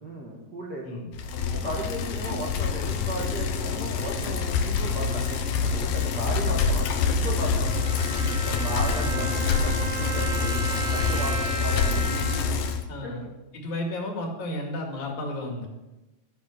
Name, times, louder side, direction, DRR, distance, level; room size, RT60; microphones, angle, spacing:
voice 1, 0.0-1.0 1.5-7.8 8.5-9.3 9.6-12.2 13.0-13.3, right 1 dB, 35° right, -1 dB, 2.0 m, -36 dB
Bicycle, 1.1-12.8, left 5 dB, 75° left, 2.6 m, -26 dB
Bowed string instrument, 7.6-12.7, right 3 dB, 85° right, 3.6 m, -34 dB
voice 2, 9.0-9.5 12.9-13.3 13.5-15.7, left 1 dB, 60° left, 1 dB, 3.3 m, -33 dB
13.0 x 8.4 x 6.5 m, 1.0 s
omnidirectional pair, 4.1 m